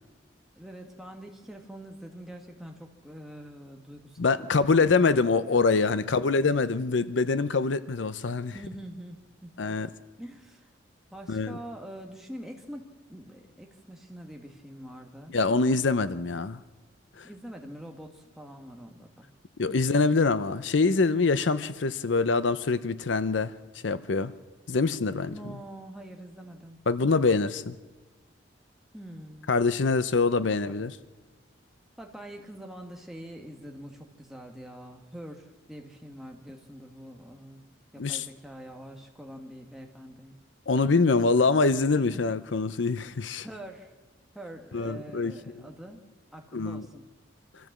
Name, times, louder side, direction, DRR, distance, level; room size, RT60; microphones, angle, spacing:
voice 1, 0.6-4.9 5.3-6.3 8.5-9.8 10.2-10.7 11.1-15.4 17.2-19.3 19.8-19.9 25.3-26.8 28.9-29.5 30.7-30.9 32.0-37.7 37.9-40.4 40.7-41.4 42.1-42.3 43.4-43.9 44.3-46.0 46.3-47.1, right 1 dB, ahead, 1.9 m, -45 dB
voice 2, 4.2-8.6 9.6-9.9 11.3-11.6 15.3-16.6 17.2-17.3 19.6-23.5 23.8-24.3 24.7-25.3 26.9-27.7 29.5-31.0 38.0-38.3 40.7-43.5 44.7-45.7 46.5-46.9, left 4 dB, 75° left, 0.7 m, -25 dB
25.5 x 14.0 x 7.5 m
head